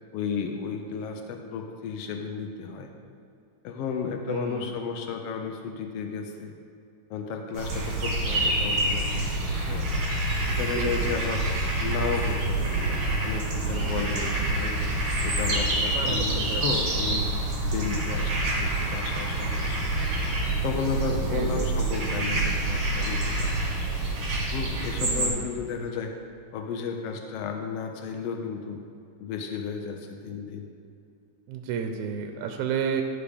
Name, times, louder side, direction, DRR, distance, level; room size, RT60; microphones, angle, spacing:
voice 1, 0.1-2.9 3.6-6.5 7.1-9.9 10.5-11.5 11.8-14.8 15.2-17.3 17.6-19.8 20.6-23.7 24.5-26.1 26.5-28.8 29.2-30.7, left 6 dB, 90° left, 4 dB, 1.4 m, -33 dB
voice 2, 4.3-4.7 10.7-11.1 15.9-16.8 21.3-21.7 25.0-25.5 31.5-33.0, right 7 dB, 80° right, 5 dB, 1.9 m, -31 dB
sound 1, 7.6-25.3, right 2 dB, 55° right, 2.4 m, -27 dB
14.5 x 5.1 x 3.5 m, 2.5 s
omnidirectional pair, 3.5 m